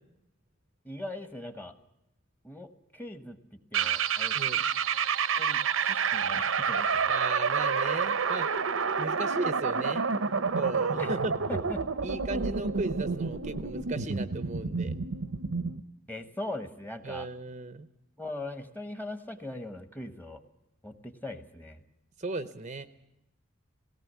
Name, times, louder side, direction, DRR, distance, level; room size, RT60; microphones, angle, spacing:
voice 1, 0.8-1.7 2.4-3.4 3.7-4.6 5.4-7.1 11.0-11.2 11.5-11.8 16.1-17.3 18.2-20.4 20.8-21.8, left 1 dB, 10° left, 9 dB, 1.2 m, -40 dB
sound 1, 3.7-15.8, right 6 dB, 75° right, 0.8 m, -29 dB
voice 2, 7.1-8.5 9.0-10.1 10.6-11.3 12.0-15.0 17.0-17.9 22.2-22.9, right 3 dB, 35° right, 12 dB, 0.7 m, -36 dB
18.5 x 17.5 x 8.2 m, 0.88 s
head